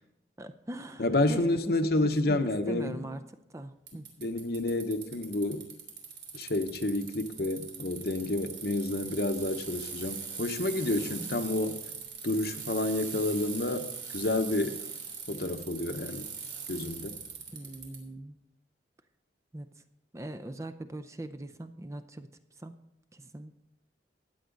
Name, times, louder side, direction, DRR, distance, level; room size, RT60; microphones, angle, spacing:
voice 1, 0.4-1.7 2.2-3.2 3.5-4.1 11.2-11.4 17.5-18.4 19.5-19.7 20.1-22.3 22.6-22.8 23.1-23.5, right 1 dB, 15° right, 9 dB, 0.5 m, -41 dB
voice 2, 1.0-3.1 4.2-5.6 6.3-11.8 12.2-14.8 15.3-16.3 16.7-17.2, left 2 dB, 60° left, 8 dB, 0.9 m, -29 dB
Bicycle, 3.9-18.0, right 6 dB, 85° right, 3.1 m, -41 dB
15.0 x 9.5 x 3.9 m, 0.83 s
head